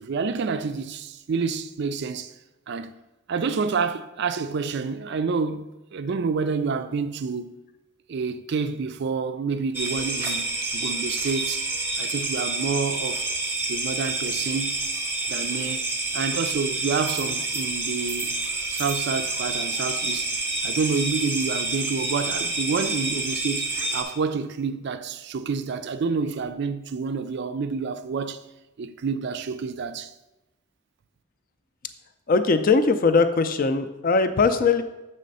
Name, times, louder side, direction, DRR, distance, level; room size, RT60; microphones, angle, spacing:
voice 1, 0.0-2.3 2.7-3.0 3.3-7.5 8.1-13.3 13.7-14.8 15.3-15.8 16.1-18.4 18.7-20.4 20.6-28.4 28.8-30.1, right 5 dB, 55° right, 0.4 m, -28 dB
sound 1, 9.7-24.0, right 2 dB, 10° right, 0.6 m, -28 dB
voice 2, 32.3-34.8, left 4 dB, 40° left, 0.4 m, -20 dB
7.4 x 3.3 x 5.4 m
head